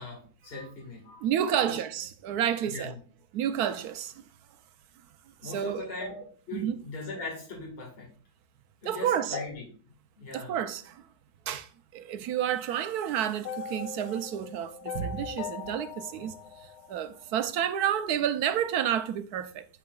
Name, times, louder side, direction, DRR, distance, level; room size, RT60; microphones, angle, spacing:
voice 1, 0.0-1.2 1.6-1.8 2.6-3.0 5.4-8.1 8.8-9.7 10.2-10.6, left 3 dB, 40° left, 2.1 m, -39 dB
voice 2, 1.2-2.9 3.3-4.2 5.4-5.9 6.5-6.8 8.8-9.4 10.3-11.1 11.5-19.7, right 10 dB, 85° right, 1.1 m, -30 dB
sound 1, 13.5-17.6, left 7 dB, 90° left, 1.2 m, -40 dB
11.0 x 4.8 x 2.3 m
omnidirectional pair, 1.6 m